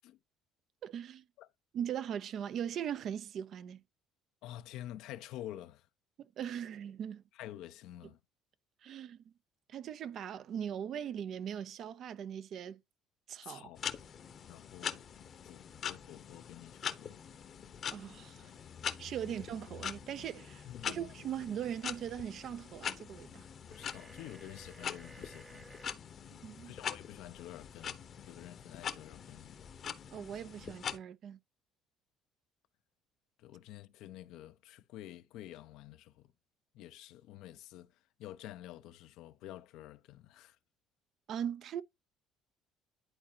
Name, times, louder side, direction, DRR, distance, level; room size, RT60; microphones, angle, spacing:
voice 1, 0.8-1.2 1.7-3.8 6.4-7.2 8.8-9.2 9.7-12.8 13.3-13.7 17.9-18.5 19.0-23.5 26.4-26.7 30.1-31.4 41.3-41.8, right 9 dB, 60° right, 0.5 m, -40 dB
voice 2, 4.4-5.9 7.3-8.2 13.4-13.8 14.5-15.0 15.4-17.2 19.3-19.4 20.7-21.1 23.7-25.8 26.6-29.7 33.4-36.3 36.7-40.6, left 13 dB, 75° left, 0.6 m, -49 dB
sound 1, 13.8-31.0, left 8 dB, 50° left, 0.9 m, -43 dB
sound 2, 23.7-26.0, right 3 dB, 20° right, 0.6 m, -55 dB
11.0 x 4.1 x 2.8 m
supercardioid pair, 85°, 0 cm